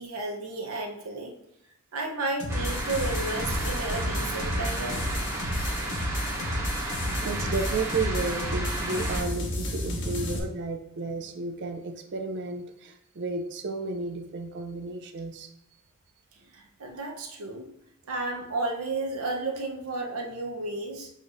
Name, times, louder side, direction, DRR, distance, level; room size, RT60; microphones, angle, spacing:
voice 1, 0.0-1.3 1.9-5.0 16.3-17.7 18.1-21.1, right 2 dB, 80° right, 1 dB, 0.8 m, -33 dB
sound 1, 2.4-10.4, left 1 dB, 60° left, 0.8 m, -32 dB
sound 2, 2.5-9.2, right 1 dB, 10° right, 0.7 m, -32 dB
voice 2, 7.2-15.5, right 3 dB, 55° right, 6 dB, 0.5 m, -33 dB
6.4 x 2.6 x 2.6 m, 0.84 s
head